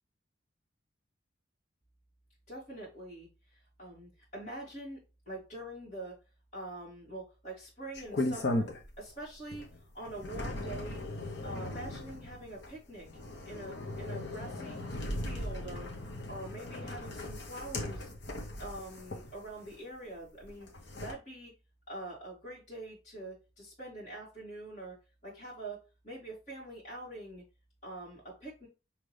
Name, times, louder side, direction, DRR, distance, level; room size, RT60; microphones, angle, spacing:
voice 1, 2.5-5.0 5.3-6.2 6.5-8.7 9.0-9.7 9.9-11.0 11.4-13.1 13.5-15.9 16.3-18.1 18.6-20.7 21.0-21.5 21.9-25.0 25.2-25.8 26.0-27.4 27.8-28.7, right 1 dB, 35° left, -7 dB, 2.4 m, -44 dB
sound 1, 7.9-9.1 9.5-19.8 20.4-21.1, left 1 dB, 60° left, 0.9 m, -38 dB
5.2 x 3.0 x 3.3 m, 0.30 s
head